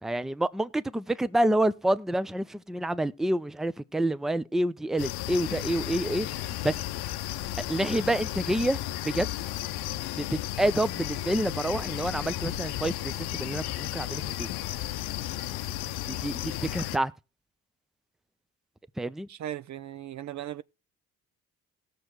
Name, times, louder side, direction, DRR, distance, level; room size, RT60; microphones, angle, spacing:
voice 1, 0.0-6.8 7.7-9.3 10.1-14.5 16.1-17.1 19.0-19.3, right 1 dB, ahead, 0.6 m, -28 dB
sound 1, 5.0-17.0, left 14 dB, 75° left, 0.7 m, -34 dB
voice 2, 19.3-20.6, right 12 dB, 45° right, 0.5 m, -37 dB
19.0 x 6.6 x 3.0 m
hypercardioid pair, 50°, 39 cm